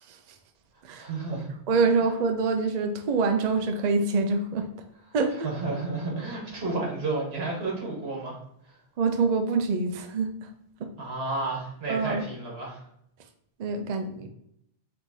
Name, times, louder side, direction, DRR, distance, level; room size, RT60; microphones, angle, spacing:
voice 1, 1.0-1.5 5.4-8.4 8.6-8.8 11.0-12.8, right 3 dB, 75° right, -2 dB, 1.6 m, -31 dB
voice 2, 1.7-4.7 5.1-5.5 9.0-10.5 11.9-12.2 13.6-14.3, right 4 dB, 55° right, 5 dB, 0.5 m, -25 dB
5.4 x 3.0 x 2.7 m, 0.74 s
omnidirectional pair, 1.1 m